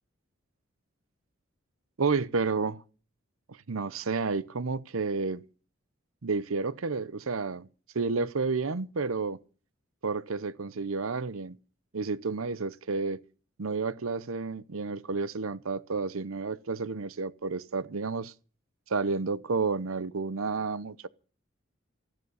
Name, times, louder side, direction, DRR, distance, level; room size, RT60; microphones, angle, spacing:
voice 1, 2.0-2.8 3.5-5.4 6.2-7.7 7.9-9.4 10.0-11.6 11.9-13.2 13.6-18.3 18.9-21.1, right 4 dB, 90° right, 0.8 m, -31 dB
15.5 x 10.5 x 7.0 m
head